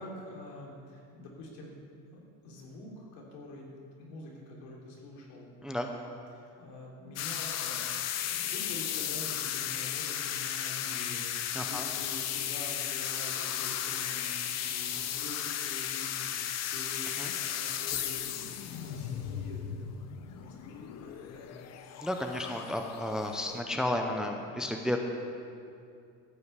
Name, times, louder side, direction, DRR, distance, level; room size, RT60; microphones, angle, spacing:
voice 1, 0.0-1.7 2.1-7.8 8.1-19.8 20.3-21.8, left 1 dB, 80° left, -2 dB, 3.2 m, -46 dB
sound 1, 7.2-23.6, left 10 dB, 45° left, 0.7 m, -35 dB
voice 2, 11.5-11.9 17.2-17.3 22.0-25.0, left 1 dB, ahead, 3 dB, 0.6 m, -32 dB
13.5 x 5.6 x 8.3 m, 2.5 s
cardioid pair, 145°, 38 cm